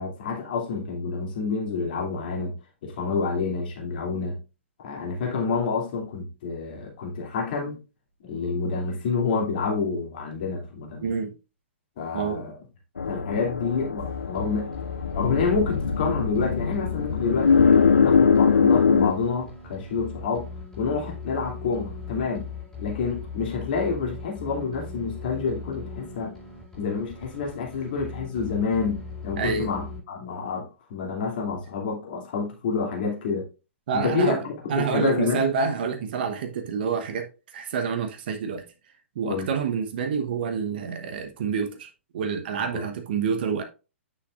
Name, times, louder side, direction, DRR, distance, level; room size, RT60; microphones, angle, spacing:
voice 1, 0.0-2.5 2.8-4.4 4.8-7.8 8.2-11.1 12.0-12.5 13.1-14.7 15.1-17.7 18.0-20.5 20.8-22.5 22.8-26.3 26.8-33.5 33.9-35.4 39.2-39.5 42.6-42.8, left 5 dB, 45° left, 2.8 m, -28 dB
voice 2, 11.0-11.3 12.1-12.5 29.4-29.7 33.9-34.4 34.7-38.6 39.1-41.9 42.1-43.6, right 6 dB, 50° right, 1.1 m, -27 dB
sound 1, 13.0-19.1, left 6 dB, 70° left, 0.5 m, -22 dB
sound 2, 14.0-30.0, left 4 dB, 5° left, 4.5 m, -39 dB
9.5 x 6.4 x 2.5 m
figure-of-eight pair, 110°, 7 cm